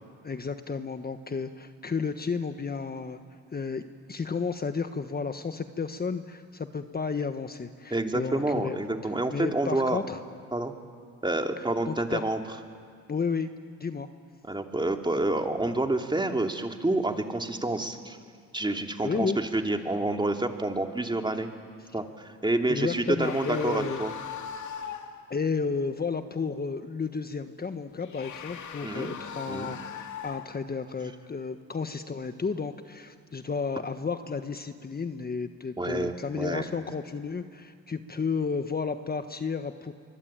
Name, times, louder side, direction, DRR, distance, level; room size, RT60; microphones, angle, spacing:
voice 1, 0.2-3.2 3.5-8.8 9.3-10.2 11.6-12.2 13.1-13.5 13.8-14.1 19.0-19.4 22.7-24.0 25.3-39.9, left 5 dB, 30° left, 8 dB, 1.4 m, -32 dB
voice 2, 7.9-10.0 10.5-10.7 11.2-12.4 14.4-18.2 18.5-21.5 21.9-24.1 28.8-29.1 29.5-29.7 35.8-36.6, right 2 dB, 15° right, 4 dB, 2.9 m, -28 dB
sound 1, 23.2-25.3 27.9-30.7, left 7 dB, 65° left, 2.5 m, -39 dB
24.5 x 23.5 x 9.0 m, 2.2 s
supercardioid pair, 65°, 32 cm